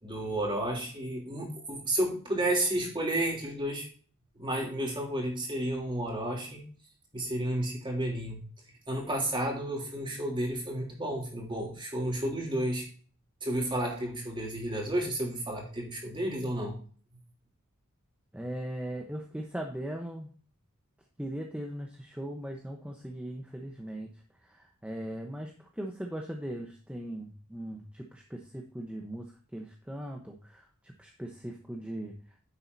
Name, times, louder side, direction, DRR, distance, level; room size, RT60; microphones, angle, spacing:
voice 1, 0.0-3.9 4.3-6.6 7.1-8.4 8.9-12.9 13.4-16.8, right 1 dB, 20° right, -1 dB, 3.1 m, -31 dB
voice 2, 18.3-20.3 21.2-32.4, right 1 dB, 5° right, 2 dB, 1.0 m, -39 dB
10.0 x 7.7 x 2.7 m, 0.43 s
head